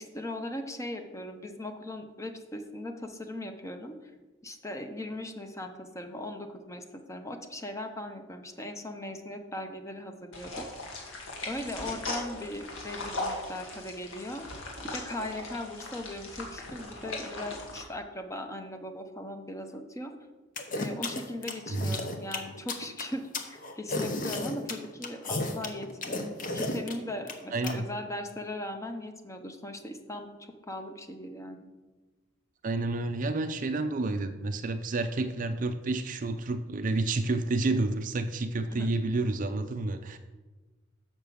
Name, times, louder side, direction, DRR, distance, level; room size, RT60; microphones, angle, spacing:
voice 1, 0.0-4.0 4.4-10.9 11.5-14.5 14.8-20.1 20.8-30.4 30.7-31.7 38.7-38.9, left 1 dB, 15° left, 6 dB, 0.7 m, -39 dB
sound 1, 10.3-17.8, left 2 dB, 80° left, 1.9 m, -39 dB
sound 2, 20.6-27.7, left 2 dB, 40° left, 0.9 m, -33 dB
voice 2, 27.5-27.8 32.6-40.2, right 2 dB, 40° right, 9 dB, 0.4 m, -30 dB
6.4 x 5.9 x 7.0 m, 1.2 s
head